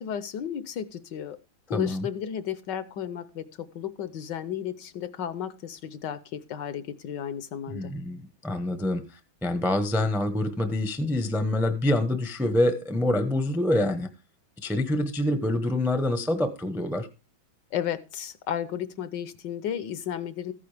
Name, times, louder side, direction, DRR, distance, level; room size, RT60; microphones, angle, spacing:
voice 1, 0.0-1.4 1.7-7.9 17.7-20.5, left 9 dB, 70° left, 13 dB, 1.3 m, -33 dB
voice 2, 1.7-2.1 7.7-9.0 9.4-14.1 14.6-17.1, left 1 dB, ahead, 9 dB, 0.6 m, -26 dB
14.0 x 9.5 x 3.4 m, 0.28 s
omnidirectional pair, 2.2 m